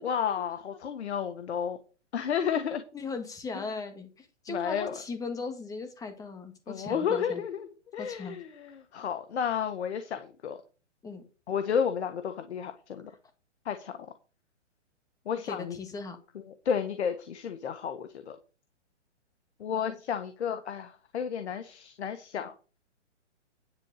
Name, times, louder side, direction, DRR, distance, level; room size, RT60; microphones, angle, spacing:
voice 1, 0.0-1.8 2.1-2.8 3.5-3.6 4.5-4.9 6.7-7.7 7.9-10.6 11.5-13.1 13.6-14.0 15.2-15.8 16.3-18.4 19.6-22.5, left 7 dB, 65° left, 8 dB, 1.5 m, -32 dB
voice 2, 2.9-7.4 8.0-8.4 11.0-11.2 15.4-16.2, left 4 dB, 10° left, 7 dB, 1.7 m, -38 dB
10.5 x 4.5 x 6.6 m, 0.33 s
hypercardioid pair, 150°, 36 cm